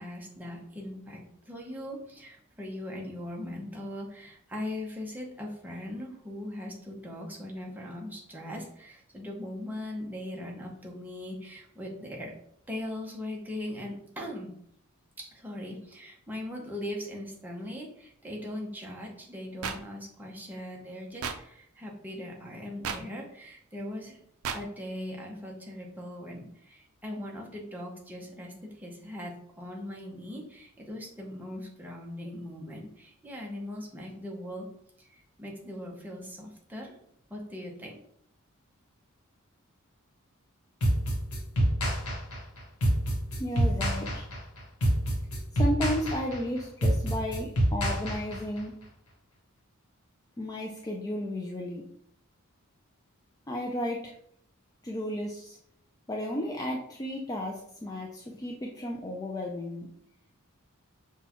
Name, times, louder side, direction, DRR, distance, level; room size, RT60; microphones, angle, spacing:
voice 1, 0.0-12.3 12.7-14.5 15.2-24.2 24.5-34.7 35.0-36.9 37.3-38.0, left 1 dB, 10° right, -2 dB, 0.7 m, -40 dB
sound 1, 19.6-19.8 21.2-21.4 22.8-23.0 24.4-24.6, right 6 dB, 75° right, 0.4 m, -32 dB
sound 2, 40.8-48.6, equal, 80° left, 1.0 m, -27 dB
voice 2, 43.4-44.3 45.5-48.7 50.4-51.8 53.5-54.1 54.8-55.6 56.1-59.9, left 1 dB, 15° left, -1 dB, 0.4 m, -33 dB
6.0 x 2.3 x 2.9 m, 0.68 s
head